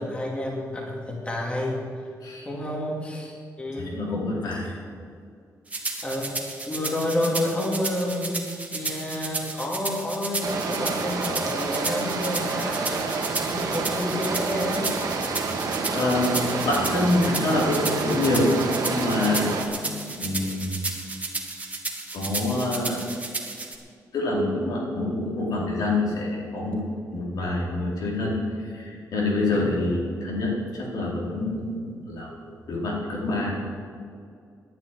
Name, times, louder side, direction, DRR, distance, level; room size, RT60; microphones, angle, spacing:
voice 1, 0.0-1.9 2.4-4.0 6.0-6.4 6.7-8.4 8.7-15.0 29.5-29.7, left 1 dB, 20° left, -2 dB, 2.6 m, -29 dB
voice 2, 3.8-4.7 15.3-15.5 15.9-18.5 18.8-20.9 22.1-23.0 24.1-26.8 27.1-31.8 32.1-32.3 32.7-33.5, left 2 dB, 80° left, -4 dB, 4.4 m, -26 dB
sound 1, 5.7-23.8, right 3 dB, 25° right, 1.9 m, -33 dB
sound 2, 10.4-19.6, right 4 dB, 75° right, 1.8 m, -29 dB
11.0 x 9.5 x 9.6 m, 2.3 s
cardioid pair, 115°, 6 cm